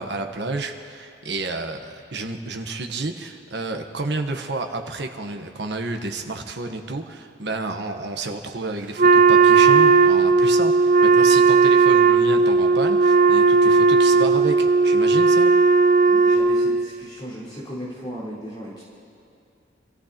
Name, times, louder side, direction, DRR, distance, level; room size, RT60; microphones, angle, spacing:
voice 1, 0.0-15.5, right 3 dB, 65° right, 4 dB, 1.1 m, -30 dB
Wind instrument woodwind instrument, 9.0-16.9, right 4 dB, 45° right, 0.5 m, -16 dB
voice 2, 16.1-18.8, equal, 25° left, -9 dB, 4.4 m, -36 dB
26.5 x 14.5 x 2.9 m, 2.6 s
head